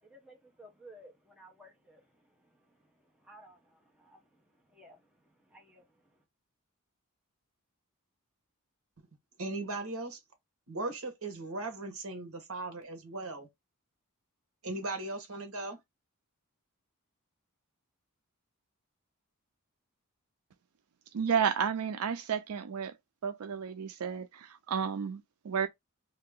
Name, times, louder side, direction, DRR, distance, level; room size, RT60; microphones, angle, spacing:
voice 1, 0.0-6.2, right 1 dB, 5° right, 1.0 m, -57 dB
voice 2, 9.4-10.2 10.7-13.5 14.6-15.8, right 2 dB, 70° right, 1.4 m, -38 dB
voice 3, 21.1-22.9 23.2-25.7, right 7 dB, 85° right, 0.4 m, -32 dB
2.8 x 2.8 x 3.7 m
head